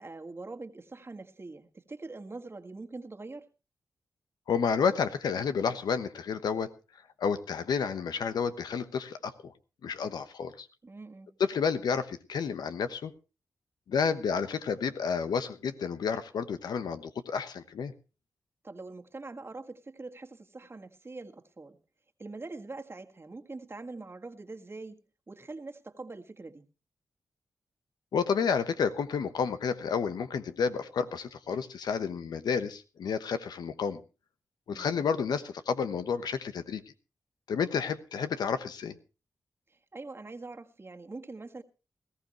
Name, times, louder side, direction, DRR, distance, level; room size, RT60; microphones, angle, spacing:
voice 1, 0.0-3.5 10.8-11.3 18.6-21.8 22.2-25.0 25.3-26.7 34.7-35.0 39.7-41.6, right 3 dB, 35° right, 1.7 m, -43 dB
voice 2, 4.5-6.7 7.2-9.5 9.8-10.7 11.4-13.1 13.9-17.9 28.1-34.0 34.7-36.8 37.5-39.0, left 6 dB, 85° left, 1.1 m, -30 dB
19.5 x 14.5 x 3.1 m
cardioid pair, 50°, 7 cm